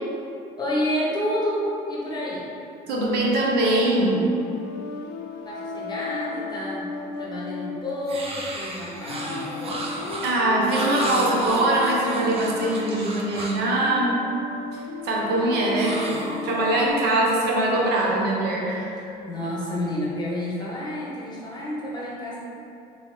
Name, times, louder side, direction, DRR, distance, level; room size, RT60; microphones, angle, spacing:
voice 1, 0.6-2.5 5.4-6.9 7.2-9.8 19.3-22.4, left 1 dB, 25° left, -6 dB, 0.8 m, -29 dB
voice 2, 2.9-4.2 10.2-14.2 14.7-18.9, right 1 dB, 75° right, -3 dB, 0.7 m, -22 dB
sound 1, 4.1-17.0, left 5 dB, 75° left, 0.4 m, -35 dB
sound 2, 8.1-13.7 15.7-16.9, right 2 dB, 35° right, 0.5 m, -33 dB
2.9 x 2.7 x 3.6 m, 2.6 s
cardioid pair, 110°, 17 cm